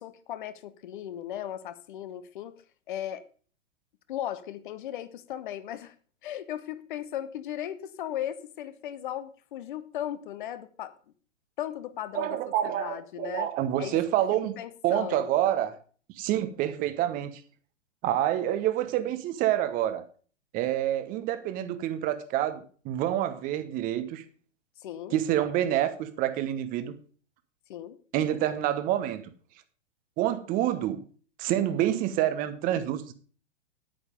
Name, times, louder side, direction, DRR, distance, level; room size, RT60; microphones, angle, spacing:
voice 1, 0.0-3.2 4.1-5.9 6.2-10.9 11.6-12.4 12.6-13.5 13.8-14.0 14.6-15.3 24.8-25.2 27.7-28.0, left 11 dB, 45° left, 1.1 m, -37 dB
voice 2, 12.1-14.5 14.8-15.7 16.2-17.4 18.0-20.0 20.5-24.2 25.1-26.9 28.1-29.2 30.2-31.0 31.4-33.1, right 12 dB, 25° right, 1.0 m, -27 dB
10.0 x 8.9 x 5.1 m
figure-of-eight pair, 110°, 36 cm